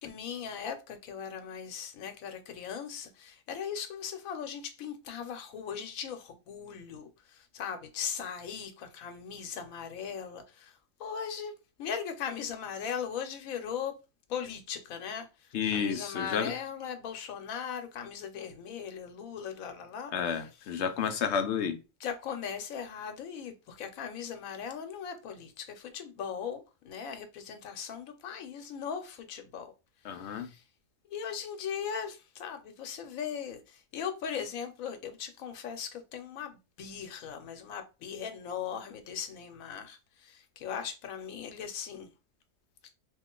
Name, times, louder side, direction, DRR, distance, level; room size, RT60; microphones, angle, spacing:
voice 1, 0.0-11.5 11.8-13.9 14.3-20.5 22.0-29.7 30.1-30.6 31.1-42.1 42.8-42.9, left 7 dB, 85° left, 1.1 m, -39 dB
voice 2, 15.5-16.5 20.1-21.8 30.0-30.5, left 7 dB, 65° left, 0.8 m, -31 dB
3.0 x 2.5 x 3.7 m
omnidirectional pair, 1.4 m